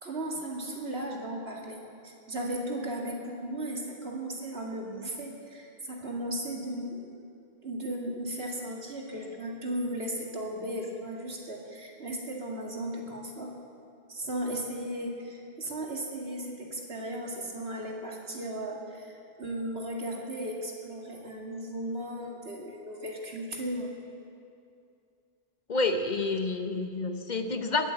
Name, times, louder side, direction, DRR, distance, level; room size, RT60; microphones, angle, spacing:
voice 1, 0.0-7.1 7.6-13.5 14.1-23.9, right 1 dB, 75° right, -1 dB, 2.4 m, -36 dB
voice 2, 25.7-27.9, left 3 dB, 45° left, 7 dB, 0.9 m, -29 dB
21.0 x 8.4 x 7.9 m, 2.5 s
omnidirectional pair, 1.1 m